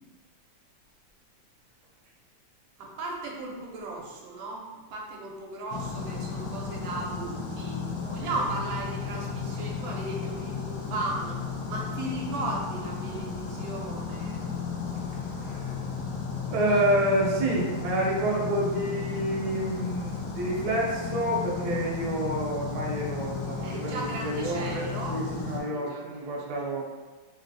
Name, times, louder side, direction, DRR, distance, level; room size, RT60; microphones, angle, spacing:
voice 1, 2.8-7.8 8.1-14.5 23.6-25.2 25.7-26.7, right 2 dB, 90° right, -1 dB, 1.4 m, -36 dB
sound 1, 5.7-25.6, left 5 dB, 70° left, 1.0 m, -34 dB
voice 2, 15.4-15.9 16.5-26.8, right 1 dB, 65° right, -3 dB, 1.2 m, -28 dB
3.3 x 2.7 x 2.6 m, 1.3 s
omnidirectional pair, 2.1 m